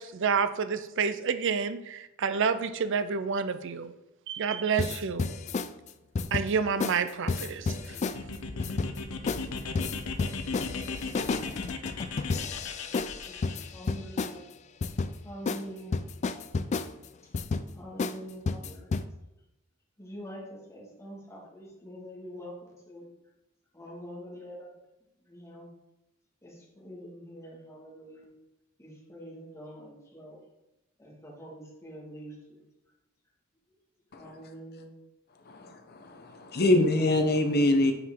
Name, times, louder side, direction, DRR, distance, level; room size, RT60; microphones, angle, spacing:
voice 1, 0.0-3.9 4.3-5.3 6.3-8.0, right 6 dB, 60° right, 12 dB, 0.5 m, -29 dB
sound 1, 4.8-5.7 6.2-6.5 6.8-7.0 7.3-8.2 8.6-9.0 9.3-9.5 9.8-14.4 14.8-15.1 15.5-15.6 15.9-16.9 17.3-17.7 18.0-18.2 18.5-19.0, left 4 dB, 35° left, 0.3 m, -31 dB
sound 2, 7.6-13.7, left 4 dB, 85° left, 0.8 m, -37 dB
voice 2, 13.3-14.4 15.2-16.0 17.7-19.1 20.0-23.1 23.7-24.7 25.3-25.7 26.4-28.3 28.8-30.4 31.0-32.7 34.2-34.9, equal, 15° left, -4 dB, 1.9 m, -45 dB
voice 3, 35.5-37.9, left 1 dB, 50° left, 6 dB, 0.9 m, -25 dB
9.2 x 4.7 x 3.7 m, 0.93 s
head